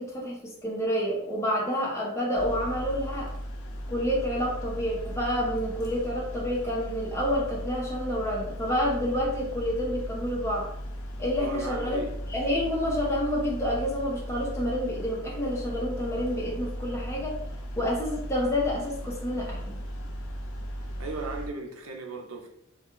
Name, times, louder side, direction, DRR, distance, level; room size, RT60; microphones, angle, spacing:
voice 1, 0.0-3.3 3.9-10.7 11.2-12.0 12.3-17.4 17.8-19.8, equal, 15° left, 0.7 m, -29 dB
sound 1, 2.3-21.5, equal, 80° left, 0.4 m, -37 dB
voice 2, 11.4-12.2 21.0-22.5, right 3 dB, 75° right, 0.6 m, -36 dB
2.3 x 2.3 x 3.0 m
head